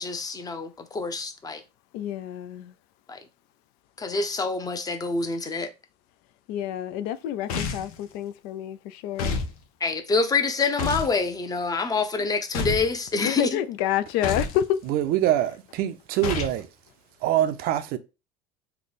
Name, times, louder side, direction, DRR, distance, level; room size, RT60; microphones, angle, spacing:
voice 1, 0.0-1.6 3.1-3.2 4.0-5.7 9.8-13.6, left 4 dB, 20° left, 0.7 m, -26 dB
voice 2, 1.9-2.7 6.5-9.4 13.2-14.7, left 11 dB, 65° left, 0.4 m, -28 dB
sound 1, 7.5-8.0 9.2-9.5 10.8-11.2 12.5-12.9 14.2-14.6 16.2-16.6, left 4 dB, 85° left, 0.8 m, -28 dB
voice 3, 14.9-16.7 17.2-18.0, right 12 dB, 55° right, 0.5 m, -24 dB
3.3 x 2.2 x 4.1 m
supercardioid pair, 100°, 18 cm